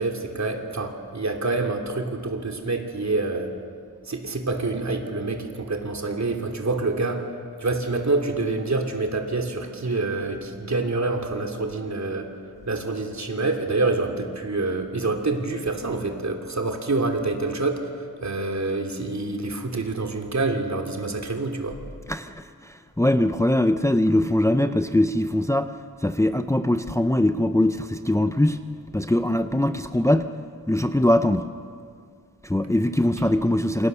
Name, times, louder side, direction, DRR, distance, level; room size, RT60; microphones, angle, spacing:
voice 1, 0.0-3.5 4.1-7.3 7.6-12.3 12.7-21.8, right 3 dB, 50° right, 3 dB, 3.0 m, -27 dB
voice 2, 22.1-25.7 26.0-28.6 28.9-30.3 30.7-31.5 32.4-33.9, left 1 dB, 10° left, 9 dB, 0.7 m, -22 dB
27.5 x 25.5 x 6.9 m, 2.2 s
wide cardioid pair, 105°, 35 cm